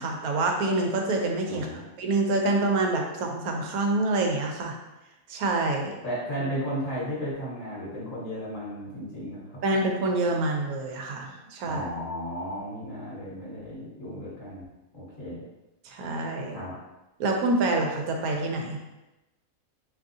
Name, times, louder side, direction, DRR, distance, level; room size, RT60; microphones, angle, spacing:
voice 1, 0.0-1.7 2.0-4.7 5.3-5.9 9.6-11.8 15.8-16.6 17.2-18.8, right 2 dB, 90° right, 2 dB, 1.1 m, -26 dB
voice 2, 1.5-1.9 6.0-9.6 11.6-14.6 14.9-15.4 16.5-16.8, equal, 40° left, -8 dB, 1.0 m, -34 dB
3.5 x 2.7 x 2.6 m, 1.0 s
omnidirectional pair, 1.5 m